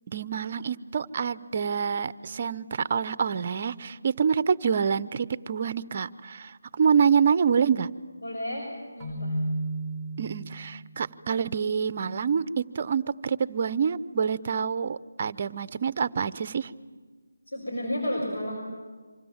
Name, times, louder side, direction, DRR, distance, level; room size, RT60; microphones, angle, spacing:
voice 1, 0.1-7.9 10.2-16.7, right 6 dB, 35° right, 16 dB, 0.7 m, -26 dB
voice 2, 8.2-8.7 8.9-9.4 17.5-18.6, left 1 dB, 70° left, -1 dB, 6.6 m, -31 dB
Keyboard (musical), 9.0-10.9, right 1 dB, 5° left, 3.5 m, -32 dB
27.5 x 25.5 x 7.3 m, 1.4 s
figure-of-eight pair, 165°, 0 cm